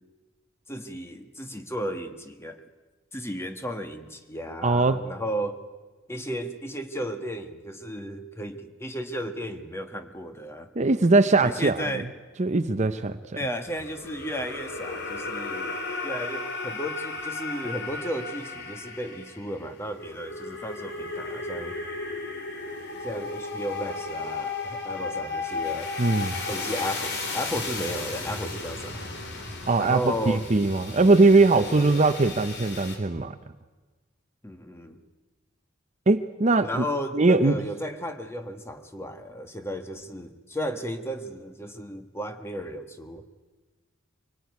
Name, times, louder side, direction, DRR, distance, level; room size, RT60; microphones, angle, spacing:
voice 1, 0.7-2.6 3.1-5.6 6.1-10.7 11.4-12.1 13.3-15.8 16.0-21.7 23.0-25.9 26.5-29.0 29.8-30.4 31.5-32.0 34.4-35.0 36.6-43.2, equal, 15° left, 7 dB, 1.6 m, -34 dB
voice 2, 4.6-5.0 10.8-12.0 12.4-13.2 26.0-26.4 29.7-33.4 36.1-36.8 37.1-37.5, right 3 dB, 35° right, 11 dB, 0.7 m, -21 dB
sound 1, 13.7-33.0, left 3 dB, 55° left, 3.7 m, -35 dB
25.0 x 19.0 x 9.5 m, 1.3 s
head